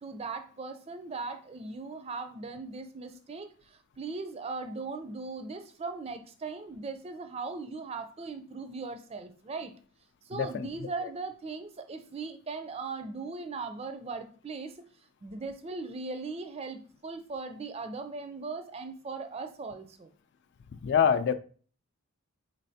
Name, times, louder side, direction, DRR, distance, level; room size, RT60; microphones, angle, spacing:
voice 1, 0.0-9.7 10.3-14.8 15.2-20.1, right 4 dB, 30° right, 8 dB, 0.4 m, -39 dB
voice 2, 10.3-10.7 20.7-21.3, left 7 dB, 55° left, 12 dB, 0.3 m, -25 dB
4.1 x 3.3 x 2.7 m, 0.41 s
head